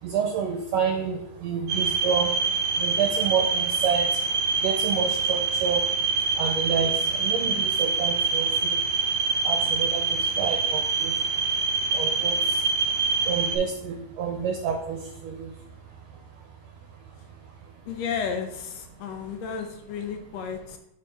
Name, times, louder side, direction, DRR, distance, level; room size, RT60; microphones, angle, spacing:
voice 1, 0.0-8.8 9.4-11.2 11.5-11.6 11.9-15.6 16.3-16.5 17.3-17.5, right 6 dB, 75° right, 3 dB, 1.6 m, -29 dB
sound 1, 1.7-13.6, right 4 dB, 50° right, 1.4 m, -25 dB
voice 2, 17.9-20.8, left 6 dB, 75° left, 6 dB, 1.6 m, -32 dB
6.2 x 5.9 x 3.4 m, 0.82 s
omnidirectional pair, 3.4 m